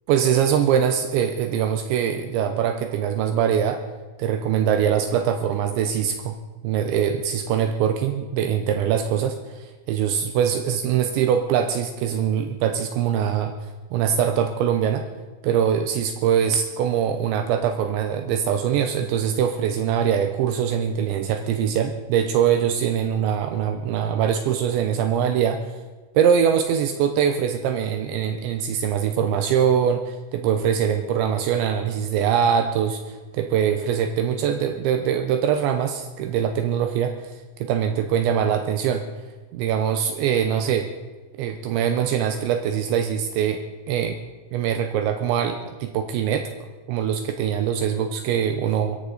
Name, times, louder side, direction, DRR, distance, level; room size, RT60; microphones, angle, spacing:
voice 1, 0.1-3.8 4.2-6.4 6.6-13.5 13.9-15.1 15.4-25.6 26.1-37.3 37.6-39.1 39.5-40.9 41.4-44.2 44.5-46.5 46.9-49.0, right 8 dB, 80° right, 7 dB, 3.0 m, -23 dB
22.0 x 15.0 x 4.1 m, 1.2 s
omnidirectional pair, 5.7 m